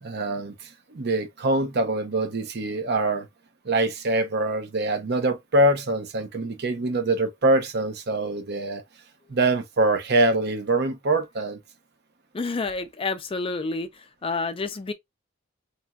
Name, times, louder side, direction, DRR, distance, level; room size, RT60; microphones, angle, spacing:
voice 1, 0.0-3.3 3.6-8.8 9.3-11.6, right 2 dB, 55° right, 0.7 m, -24 dB
voice 2, 12.3-13.9 14.2-14.9, left 3 dB, 25° left, 0.4 m, -28 dB
2.9 x 2.6 x 2.2 m
head